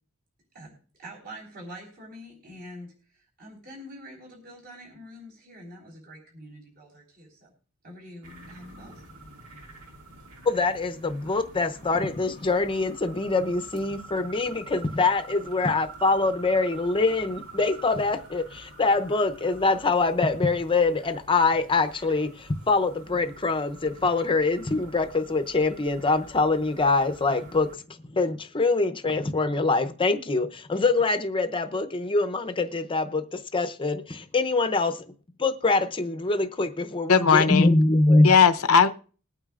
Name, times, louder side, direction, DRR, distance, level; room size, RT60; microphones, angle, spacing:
voice 1, 0.5-7.5 7.8-9.0, equal, 45° right, 3.7 m, -45 dB
sound 1, 8.2-27.8, right 3 dB, 80° right, 2.1 m, -47 dB
voice 2, 10.4-35.0 35.4-38.3, left 3 dB, 25° left, 0.6 m, -24 dB
voice 3, 37.1-37.7 38.2-38.9, left 6 dB, 75° left, 0.6 m, -18 dB
21.0 x 8.9 x 2.4 m
head